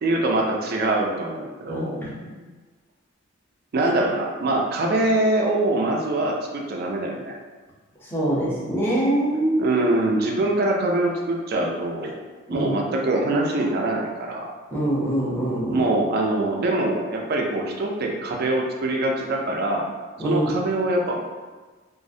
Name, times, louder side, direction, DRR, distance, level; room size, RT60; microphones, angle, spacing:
voice 1, 0.0-2.0 3.7-7.4 9.6-12.2 12.5-14.5 15.7-19.8 20.2-21.3, right 2 dB, 50° right, 0 dB, 0.3 m, -23 dB
voice 2, 1.7-2.3 8.0-9.7 12.5-12.7 14.7-15.9 20.2-20.5, right 1 dB, 10° left, -7 dB, 0.6 m, -24 dB
2.4 x 2.0 x 2.6 m, 1.3 s
head